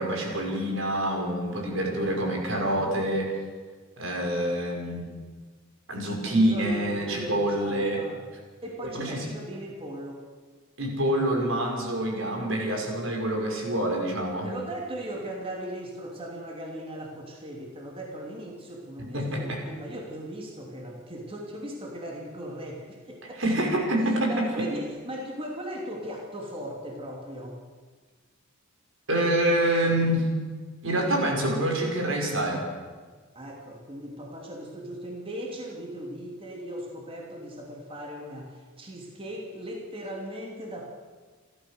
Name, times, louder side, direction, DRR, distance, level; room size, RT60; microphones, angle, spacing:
voice 1, 0.0-3.3 4.0-5.1 5.9-8.0 8.8-9.3 10.8-14.5 19.1-19.6 23.4-24.7 29.1-30.3 30.8-32.7, right 1 dB, 75° right, 1 dB, 5.7 m, -26 dB
voice 2, 1.5-2.2 6.2-8.2 8.6-10.2 14.4-23.6 24.0-27.6 29.8-29.9 33.3-40.9, equal, 30° right, 0 dB, 2.9 m, -38 dB
29.5 x 13.5 x 6.7 m, 1.5 s
head